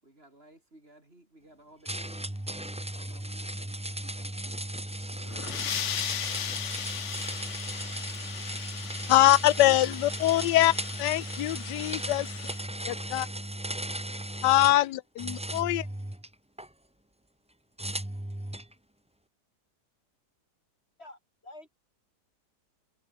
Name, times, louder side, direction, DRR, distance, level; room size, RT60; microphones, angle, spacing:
voice 1, 0.0-4.6 7.7-8.1, right 1 dB, 35° right, 5.9 m, -58 dB
sound 1, 1.8-14.8 15.2-16.7 17.8-18.7, right 1 dB, 5° right, 0.9 m, -36 dB
sound 2, 5.1-12.6, left 9 dB, 50° left, 1.1 m, -37 dB
voice 2, 9.1-10.7 11.0-12.3 12.8-13.3 14.4-15.9, left 15 dB, 90° left, 1.3 m, -23 dB
voice 3, 21.0-21.8, left 1 dB, 35° left, 4.9 m, -48 dB
omnidirectional pair, 1.8 m